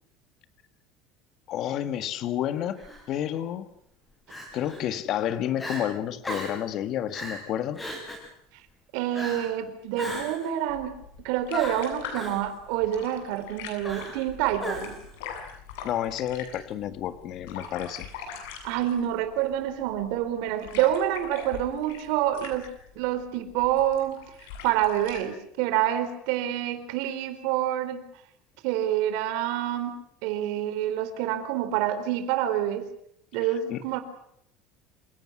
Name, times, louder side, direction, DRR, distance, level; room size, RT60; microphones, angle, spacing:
voice 1, 1.5-2.8 3.1-3.7 4.5-7.8 15.8-18.1 33.7-33.8, left 11 dB, 40° left, 12 dB, 1.8 m, -30 dB
Crying sobbing, 2.8-3.0 4.3-4.8 5.2-5.3 5.6-5.8 6.2-6.6 7.1-7.4 7.8-8.3 9.1-9.5 10.0-10.5 11.5-12.4 13.8-14.3 14.6-15.1, equal, 10° left, 6.5 m, -35 dB
voice 2, 8.9-11.0 11.2-14.9 18.6-22.7 23.0-24.2 24.6-28.1 28.6-32.9 33.3-34.0, right 12 dB, 65° right, 10 dB, 4.1 m, -27 dB
sound 1, 10.7-25.2, left 6 dB, 85° left, 7.9 m, -43 dB
28.0 x 17.5 x 9.7 m, 0.73 s
cardioid pair, 170°, 0 cm